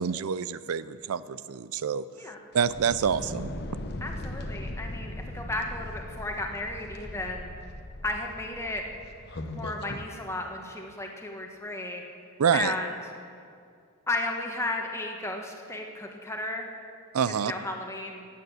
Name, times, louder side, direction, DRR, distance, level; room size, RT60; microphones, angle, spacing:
voice 1, 0.0-2.0 2.5-3.5 12.4-12.7 17.1-17.5, right 7 dB, 85° right, 16 dB, 0.4 m, -27 dB
sound 1, 2.5-10.1, left 1 dB, 50° left, 0.9 m, -39 dB
voice 2, 4.0-7.6 8.0-8.8 9.6-12.0 12.5-13.1 14.1-16.7 17.2-18.3, left 2 dB, 15° left, 2 dB, 1.4 m, -34 dB
16.0 x 8.7 x 7.9 m, 2.3 s
head